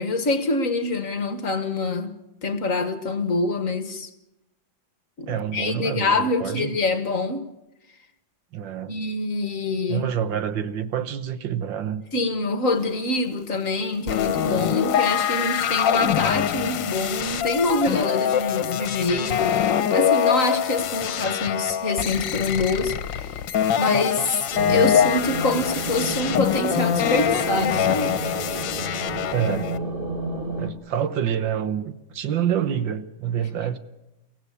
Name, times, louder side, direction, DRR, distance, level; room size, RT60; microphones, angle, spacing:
voice 1, 0.0-4.1 5.2-7.4 8.9-10.1 12.1-19.6 19.9-23.4 23.8-24.4 24.7-28.1, left 2 dB, 45° left, 1.5 m, -25 dB
voice 2, 5.3-6.8 8.5-9.0 9.9-12.0 29.3-29.7 30.6-33.8, right 9 dB, 75° right, 1.8 m, -27 dB
sound 1, 14.1-29.8, left 9 dB, 70° left, 1.6 m, -24 dB
sound 2, 24.5-30.7, right 2 dB, 30° right, 1.9 m, -31 dB
23.0 x 16.5 x 8.5 m
omnidirectional pair, 2.1 m